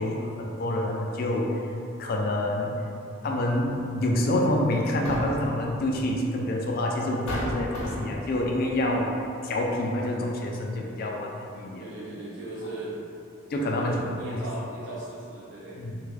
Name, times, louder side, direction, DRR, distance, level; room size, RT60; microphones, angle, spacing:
voice 1, 0.0-1.6 2.0-2.8 3.2-9.1 9.4-11.8 13.5-14.0 14.3-14.4 15.8-16.0, left 1 dB, 45° left, 0 dB, 0.3 m, -27 dB
sound 1, 5.0-5.6 6.6-6.7 7.3-8.3, equal, 90° left, 0.8 m, -32 dB
voice 2, 11.8-13.0 13.6-15.8, right 1 dB, 60° right, -7 dB, 0.8 m, -38 dB
3.5 x 2.2 x 3.2 m, 2.6 s
head